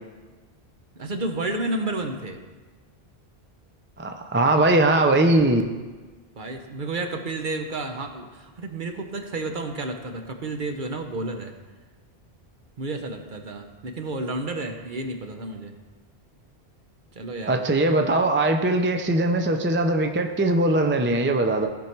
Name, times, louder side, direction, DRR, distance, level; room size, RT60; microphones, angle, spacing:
voice 1, 1.0-2.4 6.4-11.5 12.8-15.8 17.1-17.7, right 2 dB, 50° right, 5 dB, 1.0 m, -31 dB
voice 2, 4.0-5.6 17.5-21.7, right 2 dB, 15° right, 5 dB, 0.5 m, -21 dB
16.0 x 5.5 x 4.6 m, 1.3 s
omnidirectional pair, 1.1 m